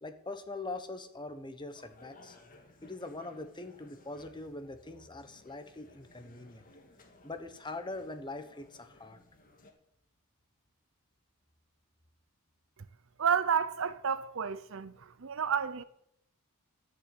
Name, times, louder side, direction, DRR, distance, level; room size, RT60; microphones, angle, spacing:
voice 1, 0.0-2.4 2.8-6.7 7.2-9.2, left 2 dB, 20° left, 1.2 m, -42 dB
sound 1, 1.7-9.7, left 2 dB, 40° left, 2.0 m, -59 dB
voice 2, 13.2-15.8, right 7 dB, 65° right, 0.7 m, -31 dB
13.0 x 6.7 x 8.5 m
head